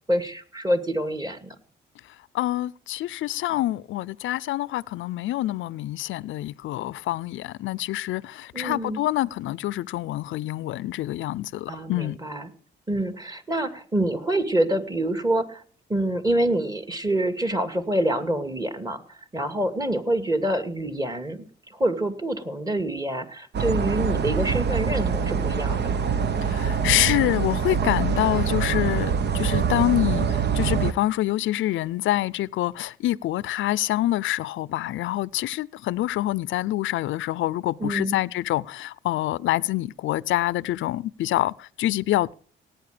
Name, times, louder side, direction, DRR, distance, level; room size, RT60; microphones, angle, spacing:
voice 1, 0.1-1.6 8.5-9.0 11.7-12.5 12.9-15.6 15.9-19.0 19.3-21.4 21.7-26.0 37.8-38.2, right 1 dB, 20° right, 2.3 m, -26 dB
voice 2, 2.3-12.2 26.4-42.3, left 15 dB, 75° left, 0.6 m, -26 dB
sound 1, 23.5-30.9, right 6 dB, 55° right, 1.1 m, -24 dB
17.5 x 9.2 x 5.0 m
cardioid pair, 90°, 20 cm